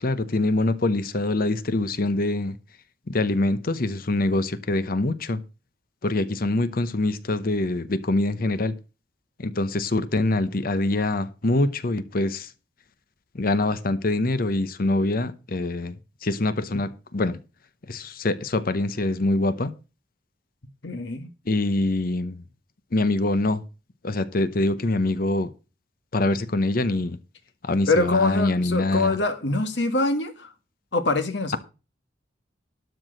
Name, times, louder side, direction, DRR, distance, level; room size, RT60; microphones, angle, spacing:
voice 1, 0.0-2.6 3.1-5.4 6.0-8.7 9.4-12.5 13.3-16.0 16.2-17.4 17.9-19.7 21.5-22.4 22.9-23.6 24.0-25.5 26.1-27.2 27.6-29.2, left 2 dB, 50° left, 0.8 m, -24 dB
voice 2, 20.8-21.3 27.9-30.5 30.9-31.6, left 2 dB, 65° left, 1.6 m, -24 dB
12.5 x 4.7 x 7.7 m
head